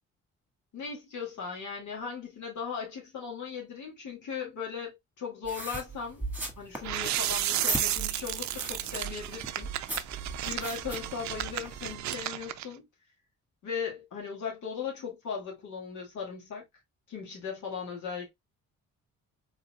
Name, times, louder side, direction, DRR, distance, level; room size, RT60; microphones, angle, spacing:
voice 1, 0.7-6.3 6.6-9.7 10.4-12.8 13.6-16.6 17.1-18.3, left 6 dB, 75° left, 2.1 m, -38 dB
sound 1, 5.4-11.9, right 2 dB, 5° right, 1.6 m, -39 dB
sound 2, 6.8-12.7, right 13 dB, 70° right, 0.5 m, -33 dB
3.9 x 3.8 x 2.2 m
cardioid pair, 90°, 30 cm